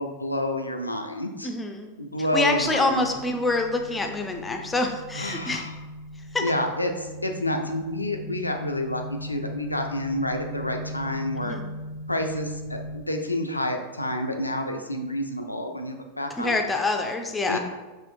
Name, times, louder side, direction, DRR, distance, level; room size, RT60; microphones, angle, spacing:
voice 1, 0.0-1.5 2.0-3.1 5.1-5.7 6.4-11.5 12.1-16.6 17.5-17.6, left 1 dB, 85° left, 4 dB, 0.4 m, -29 dB
voice 2, 1.4-1.9 2.3-5.7 6.3-6.4 11.4-11.7 16.3-17.6, left 2 dB, 10° left, 4 dB, 0.5 m, -26 dB
sound 1, 2.6-13.0, equal, 75° right, 0.5 m, -38 dB
5.6 x 3.1 x 2.5 m, 1.2 s
figure-of-eight pair, 90°, 0 cm